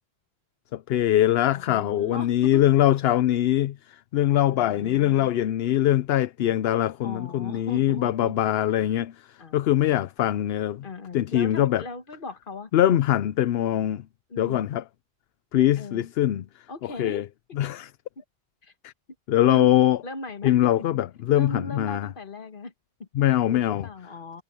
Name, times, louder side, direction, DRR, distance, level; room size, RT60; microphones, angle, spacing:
voice 1, 0.7-10.9 11.1-11.8 12.7-14.1 14.4-14.8 15.5-17.3 17.5-17.9 18.8-18.9 19.3-20.0 20.4-22.1 23.1-23.9, left 12 dB, 70° left, 0.8 m, -23 dB
voice 2, 1.5-2.7 4.5-5.3 7.0-8.4 9.4-10.0 10.8-12.7 14.3-14.7 15.8-16.1 16.7-17.3 18.6-18.7 19.5-19.7 20.0-20.5 20.9-21.0 21.3-22.7 23.0-23.1 23.5-24.4, left 3 dB, 55° left, 1.7 m, -38 dB
omnidirectional pair, 1.1 m